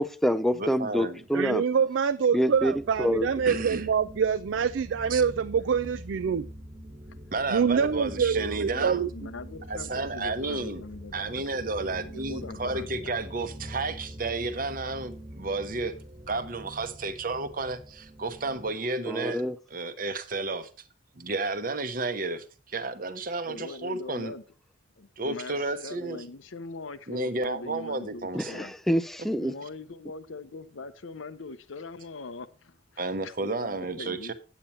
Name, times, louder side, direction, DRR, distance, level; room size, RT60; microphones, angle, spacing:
voice 1, 0.0-1.6 2.3-3.3 19.1-19.6 28.3-29.5, equal, ahead, 0.4 m, -26 dB
voice 2, 0.5-1.2 3.5-3.8 5.1-5.2 7.3-9.0 9.7-10.8 11.1-15.9 16.3-19.4 19.7-20.7 21.2-24.3 25.2-26.2 27.1-28.7 33.0-34.3, right 3 dB, 45° right, 0.9 m, -32 dB
voice 3, 1.3-6.5 7.5-9.1, right 6 dB, 75° right, 0.4 m, -25 dB
sound 1, 2.5-18.7, equal, 25° right, 1.4 m, -44 dB
voice 4, 8.0-13.1 23.4-24.4 25.0-28.7 29.3-34.3, left 3 dB, 90° left, 0.8 m, -42 dB
8.8 x 8.4 x 4.2 m
head